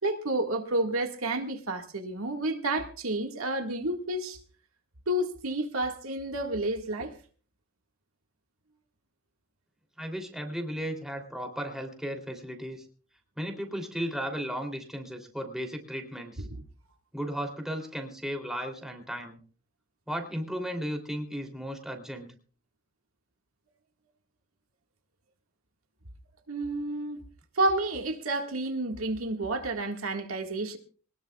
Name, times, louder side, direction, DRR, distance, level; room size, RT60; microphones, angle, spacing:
voice 1, 0.0-4.4 5.1-7.1 26.5-27.2 27.6-30.8, right 2 dB, 80° right, 1.8 m, -30 dB
voice 2, 10.0-12.8 13.4-16.5 17.1-19.4 20.1-22.3, equal, ahead, 3.0 m, -35 dB
22.0 x 19.5 x 2.4 m
head